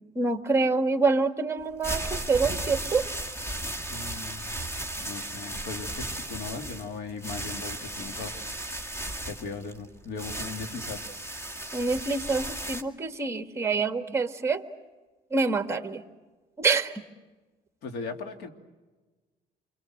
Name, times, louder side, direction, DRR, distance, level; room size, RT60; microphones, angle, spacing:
voice 1, 0.2-3.0 11.7-14.6 15.3-16.0 16.6-16.9, right 4 dB, 15° right, 8 dB, 1.8 m, -26 dB
sound 1, 1.6-12.8, right 1 dB, 15° left, 2.2 m, -35 dB
voice 2, 3.9-4.6 5.0-8.3 9.3-11.0 17.8-18.5, left 4 dB, 75° left, 6 dB, 2.8 m, -38 dB
28.5 x 24.0 x 7.9 m, 1.2 s
cardioid pair, 110°, 17 cm